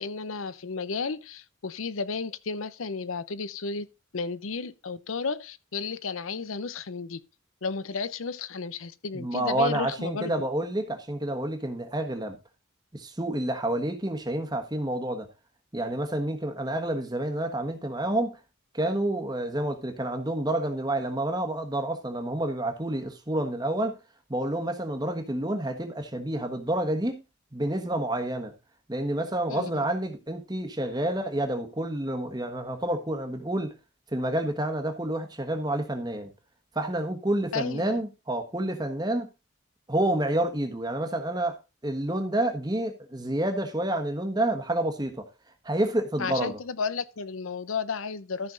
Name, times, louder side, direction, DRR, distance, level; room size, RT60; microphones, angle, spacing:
voice 1, 0.0-3.9 4.1-7.2 7.6-10.3 29.5-29.8 37.5-38.0 46.2-48.5, left 5 dB, 85° left, 0.7 m, -33 dB
voice 2, 9.1-12.4 12.9-15.3 15.7-18.4 18.7-23.9 24.3-27.2 27.5-28.5 28.9-33.7 34.1-36.3 36.7-39.3 39.9-45.3 45.6-46.6, right 1 dB, 20° right, 1.3 m, -29 dB
13.5 x 5.6 x 3.8 m
head